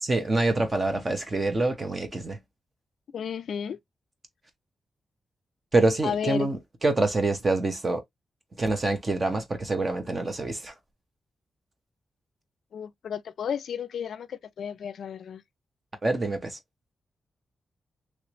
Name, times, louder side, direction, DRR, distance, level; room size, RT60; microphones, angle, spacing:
voice 1, 0.0-2.4 5.7-8.0 8.6-10.7 16.0-16.6, right 2 dB, 25° right, 0.8 m, -26 dB
voice 2, 3.1-3.8 6.0-6.5 12.7-15.4, left 7 dB, 75° left, 0.3 m, -32 dB
3.1 x 3.1 x 3.0 m
wide cardioid pair, 170°, 0 cm